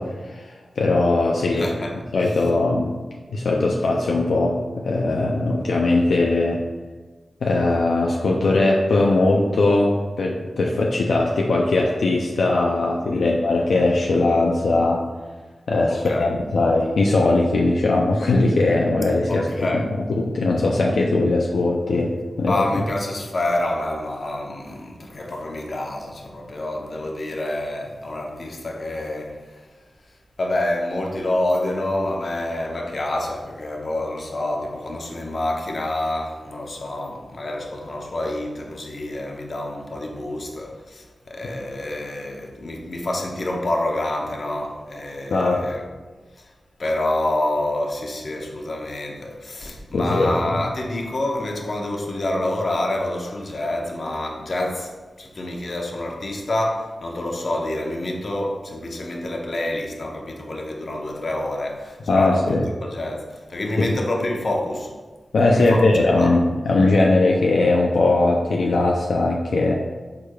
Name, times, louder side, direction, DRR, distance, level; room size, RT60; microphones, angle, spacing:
voice 1, 0.0-1.7 2.1-2.9 3.3-6.6 7.4-15.0 15.7-19.8 20.1-22.1 22.4-22.5 41.4-41.5 45.3-45.6 49.9-50.3 62.1-62.6 63.8-63.9 65.3-69.7, left 2 dB, 85° left, 0.4 m, -20 dB
voice 2, 1.5-2.0 13.1-13.3 15.9-16.3 19.3-19.9 22.4-29.6 30.4-45.8 46.4-46.5 46.8-54.9 55.2-62.6 62.8-64.9 65.5-66.4, left 1 dB, 55° left, 0.7 m, -27 dB
4.8 x 4.7 x 2.2 m
cardioid pair, 60°, 0 cm